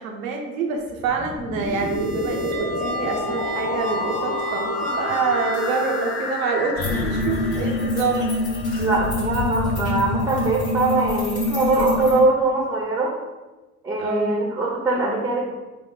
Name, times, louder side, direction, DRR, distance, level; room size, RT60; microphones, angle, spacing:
voice 1, 0.0-8.2 14.0-14.4, right 4 dB, 90° right, 2 dB, 0.6 m, -26 dB
sound 1, 0.9-8.8, left 3 dB, 30° left, 0.6 m, -31 dB
sound 2, 1.6-6.5, equal, 45° right, 0.6 m, -30 dB
sound 3, 6.8-12.2, left 2 dB, 80° left, 1.3 m, -25 dB
voice 2, 8.8-13.1 13.8-15.5, right 2 dB, 10° right, -2 dB, 0.7 m, -22 dB
3.7 x 2.1 x 3.7 m, 1.2 s
hypercardioid pair, 55°, 40 cm